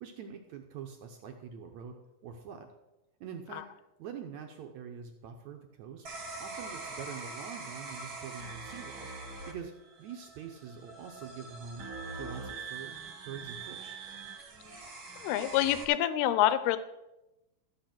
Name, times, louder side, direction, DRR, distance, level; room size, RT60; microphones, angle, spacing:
voice 1, 0.0-2.0 2.2-2.7 3.2-3.7 4.0-6.1 6.4-9.1 9.5-9.7 10.0-11.9 12.1-12.9 13.2-14.0, right 7 dB, 75° right, 4 dB, 1.7 m, -44 dB
sound 1, 6.0-15.8, right 3 dB, 45° right, 2.0 m, -43 dB
voice 2, 15.2-16.8, left 12 dB, 90° left, 13 dB, 2.7 m, -26 dB
13.5 x 7.8 x 6.0 m, 0.96 s
omnidirectional pair, 4.4 m